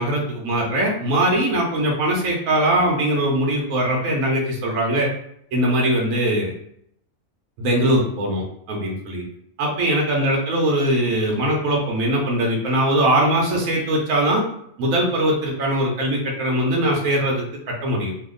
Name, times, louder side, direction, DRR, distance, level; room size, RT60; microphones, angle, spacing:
voice 1, 0.0-5.1 5.5-6.5 7.6-8.4 8.7-9.2 9.6-14.4 14.8-18.1, right 1 dB, 70° right, -2 dB, 1.1 m, -21 dB
2.8 x 2.4 x 3.7 m, 0.71 s
omnidirectional pair, 1.5 m